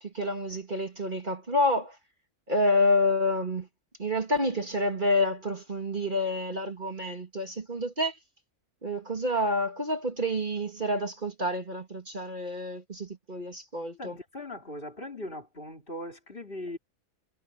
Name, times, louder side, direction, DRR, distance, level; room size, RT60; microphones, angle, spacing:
voice 1, 0.0-2.0 2.5-3.7 4.0-8.1 8.8-14.2, left 1 dB, 35° right, 2.3 m, -28 dB
voice 2, 14.0-16.8, left 1 dB, 40° left, 3.7 m, -39 dB
omnidirectional pair, 1.4 m